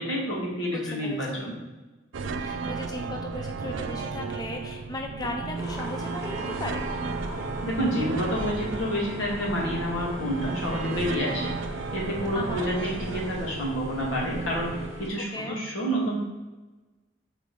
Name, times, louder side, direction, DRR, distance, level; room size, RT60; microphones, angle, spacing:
voice 1, 0.0-1.6 7.6-11.5 11.9-16.2, equal, 90° left, -4 dB, 1.9 m, -29 dB
voice 2, 0.7-1.6 2.3-6.9 12.3-12.7 15.3-15.6, left 1 dB, 20° left, 2 dB, 0.4 m, -37 dB
sound 1, 2.1-14.9, right 4 dB, 80° right, 0.4 m, -34 dB
sound 2, 5.6-15.1, left 1 dB, 15° right, 1.2 m, -38 dB
4.8 x 4.2 x 5.3 m, 1.2 s
head